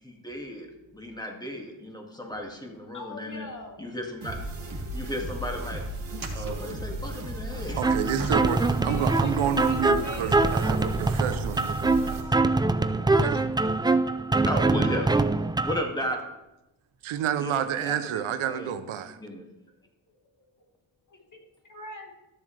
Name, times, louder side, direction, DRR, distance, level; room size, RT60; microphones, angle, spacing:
voice 1, 0.0-3.5 3.8-5.8 6.3-7.9 12.2-12.9 14.5-15.1 15.6-16.3 17.4-18.7 19.2-19.4, equal, 10° left, 1 dB, 2.1 m, -35 dB
voice 2, 2.9-3.9 7.7-7.8 8.9-11.0 12.2-12.4 14.5-15.3 20.1-20.7 21.1-21.2 21.6-22.1, left 2 dB, 40° left, 0 dB, 2.6 m, -43 dB
sound 1, 4.2-12.2, right 1 dB, 60° right, 2.4 m, -35 dB
sound 2, 6.0-8.9 9.2-11.9 12.6-12.7 16.8-17.0 18.3-18.4, right 3 dB, 45° right, 2.0 m, -42 dB
voice 3, 6.1-7.0 7.8-12.3 13.2-13.5 17.0-19.2, right 9 dB, 85° right, 10 dB, 0.8 m, -30 dB
sound 3, 7.8-15.8, right 3 dB, 10° right, 0.4 m, -24 dB
13.5 x 7.1 x 3.3 m, 0.95 s
cardioid pair, 60°, 47 cm